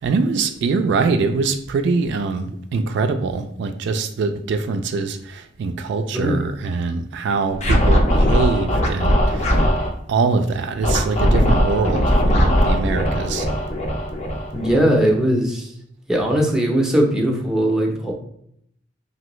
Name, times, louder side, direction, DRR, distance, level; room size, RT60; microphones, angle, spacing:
voice 1, 0.0-9.7 10.1-13.5, right 4 dB, 65° right, 0.3 m, -23 dB
Scratching (performance technique), 7.6-9.9 10.8-15.1, equal, 40° left, 0.6 m, -19 dB
voice 2, 14.5-15.7 16.1-18.1, right 1 dB, 5° right, 0.6 m, -19 dB
3.1 x 2.6 x 3.0 m
head